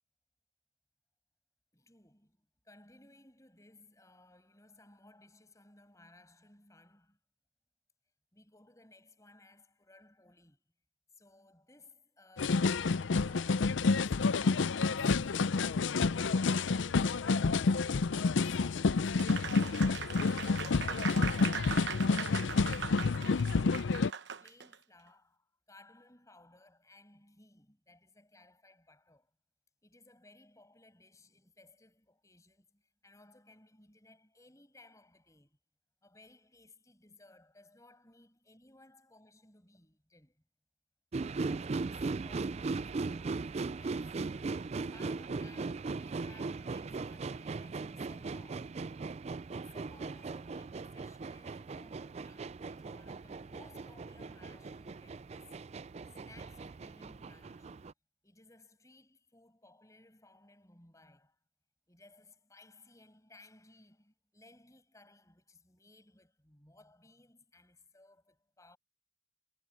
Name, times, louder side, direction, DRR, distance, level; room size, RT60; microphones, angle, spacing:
voice 1, 1.7-7.2 8.3-10.6 11.2-21.4 21.7-29.3 29.8-35.6 36.0-40.4 41.6-44.2 44.7-48.8 49.5-55.6 56.2-57.8 58.2-61.4 61.9-68.8, left 2 dB, 15° left, 6.6 m, -61 dB
sound 1, 12.4-24.1, left 4 dB, 75° left, 0.5 m, -29 dB
Applause, 19.2-24.7, right 7 dB, 60° right, 0.9 m, -40 dB
sound 2, 41.1-57.9, right 3 dB, 35° right, 0.3 m, -39 dB
head